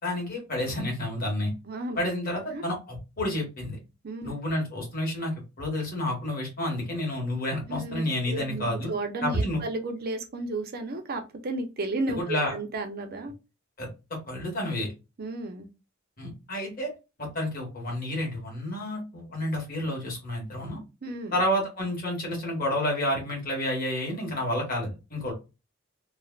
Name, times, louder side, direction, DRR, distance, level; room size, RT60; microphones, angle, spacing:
voice 1, 0.0-1.5 2.0-3.8 4.2-5.3 5.6-8.9 9.2-9.6 12.1-12.5 13.8-13.9 14.3-14.9 16.2-16.9 17.2-20.8 21.3-25.3, left 1 dB, 45° left, 1.4 m, -30 dB
voice 2, 1.7-2.0 2.5-2.6 4.0-4.3 7.7-13.3 15.2-15.7 21.0-21.4, right 2 dB, 50° right, 0.6 m, -33 dB
3.2 x 2.1 x 2.3 m
head